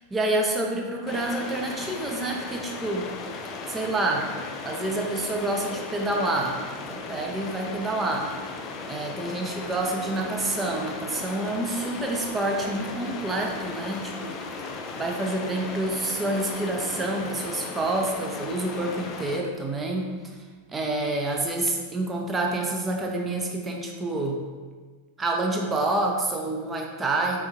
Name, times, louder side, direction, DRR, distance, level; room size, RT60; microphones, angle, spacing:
voice 1, 0.0-3.1 3.7-4.3 4.6-8.3 8.9-14.4 15.0-20.1 20.7-24.4 25.2-27.5, right 2 dB, 15° right, 1 dB, 0.6 m, -28 dB
sound 1, 1.1-19.4, left 4 dB, 35° left, 0.4 m, -36 dB
4.5 x 3.5 x 2.8 m, 1.4 s
figure-of-eight pair, 90°, 0 cm